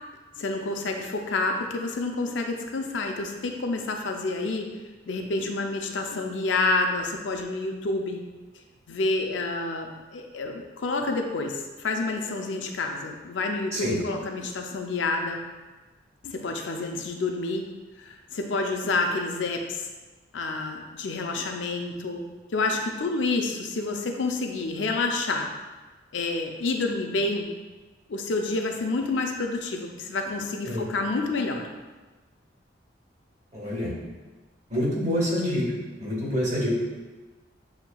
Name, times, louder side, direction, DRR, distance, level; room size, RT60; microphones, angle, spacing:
voice 1, 0.4-4.8 5.1-8.2 8.9-15.4 16.2-17.7 18.0-19.9 20.3-22.2 22.5-25.5 26.1-27.5 28.1-31.7, left 3 dB, 70° left, 3 dB, 0.5 m, -28 dB
voice 2, 33.5-33.9 34.7-35.7 36.0-36.7, equal, 35° right, -6 dB, 1.2 m, -26 dB
7.0 x 2.8 x 2.2 m, 1.2 s
head